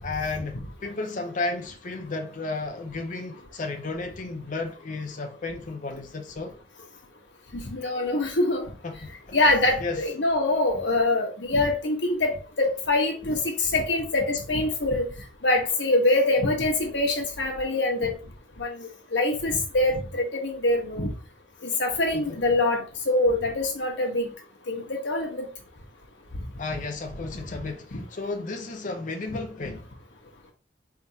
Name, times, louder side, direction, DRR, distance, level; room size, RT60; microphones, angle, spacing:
voice 1, 0.0-6.6 8.8-9.4 9.8-10.0 22.1-22.4 26.6-29.9, left 3 dB, 45° left, 0.7 m, -33 dB
voice 2, 7.5-8.7 9.3-12.3 12.6-15.1 15.4-18.1 18.6-21.1 21.6-24.3 24.7-25.4 27.3-27.4 27.9-28.0, left 2 dB, 90° left, 1.2 m, -24 dB
4.6 x 3.5 x 2.8 m
head